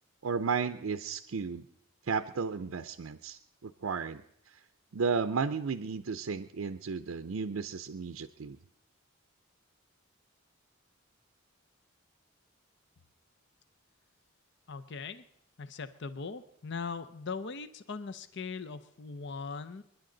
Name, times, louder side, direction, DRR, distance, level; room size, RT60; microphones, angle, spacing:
voice 1, 0.2-1.6 2.1-4.2 4.9-8.6, right 5 dB, 75° right, 9 dB, 0.5 m, -33 dB
voice 2, 14.7-15.2 15.6-19.8, left 4 dB, 55° left, 12 dB, 0.6 m, -40 dB
29.0 x 10.5 x 3.9 m, 0.71 s
head